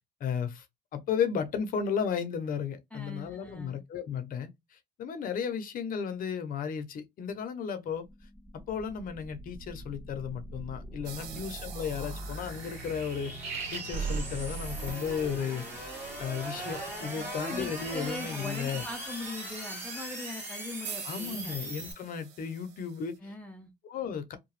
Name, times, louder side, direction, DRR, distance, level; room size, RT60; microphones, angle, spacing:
voice 1, 0.2-0.6 0.9-4.5 5.0-8.0 8.7-13.3 13.7-15.6 16.2-18.8 21.0-23.2 23.9-24.4, left 7 dB, 55° left, 0.7 m, -34 dB
voice 2, 2.9-3.8 11.2-11.4 17.1-21.6 23.2-23.7, left 2 dB, 10° left, 0.6 m, -41 dB
sound 1, 8.1-21.9, right 1 dB, 10° right, 1.9 m, -41 dB
sound 2, 11.0-14.5 20.8-23.2, right 8 dB, 85° right, 0.7 m, -47 dB
sound 3, 13.4-18.9, right 4 dB, 65° right, 1.2 m, -39 dB
2.8 x 2.2 x 3.1 m
cardioid pair, 110°, 17 cm